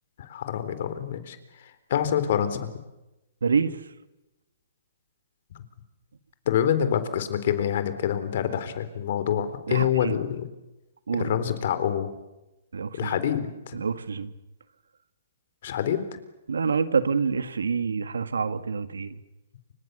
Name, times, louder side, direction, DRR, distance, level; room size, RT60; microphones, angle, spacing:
voice 1, 0.2-2.7 6.5-10.4 11.2-12.1 13.0-13.8 15.6-16.2, left 9 dB, 55° left, 11 dB, 3.9 m, -26 dB
voice 2, 3.4-3.8 9.7-10.2 11.1-11.4 12.7-13.1 13.7-14.3 16.5-19.2, right 5 dB, 90° right, 11 dB, 2.0 m, -27 dB
29.0 x 26.0 x 7.0 m, 0.98 s
hypercardioid pair, 140°, 0 cm